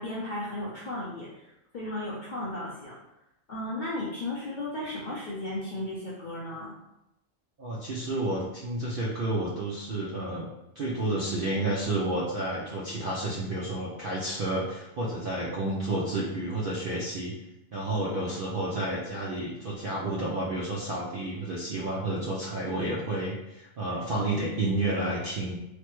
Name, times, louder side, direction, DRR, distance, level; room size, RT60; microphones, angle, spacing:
voice 1, 0.0-2.9 3.5-6.7, left 1 dB, 60° left, -7 dB, 0.5 m, -35 dB
voice 2, 7.6-10.5 10.8-17.3 17.7-25.6, right 2 dB, 65° right, -5 dB, 0.5 m, -30 dB
3.1 x 2.1 x 3.0 m, 0.89 s
omnidirectional pair, 1.4 m